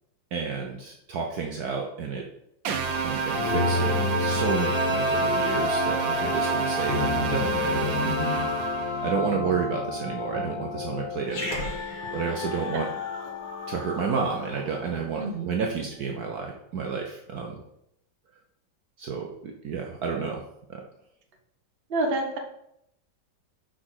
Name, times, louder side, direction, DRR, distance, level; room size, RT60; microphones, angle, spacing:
voice 1, 0.3-2.2 3.0-8.5 9.0-11.7 12.1-12.9 13.7-17.6 19.0-20.4 20.7-20.8, right 5 dB, 60° right, 1 dB, 1.2 m, -31 dB
sound 1, 2.7-9.1, right 5 dB, 80° right, 1.6 m, -29 dB
sound 2, 3.3-15.0, left 4 dB, 85° left, 1.8 m, -30 dB
Growling, 11.2-15.9, left 1 dB, 50° left, 1.7 m, -39 dB
voice 2, 21.9-22.4, right 2 dB, 35° right, 3 dB, 1.2 m, -27 dB
6.1 x 5.0 x 6.2 m, 0.76 s
omnidirectional pair, 2.0 m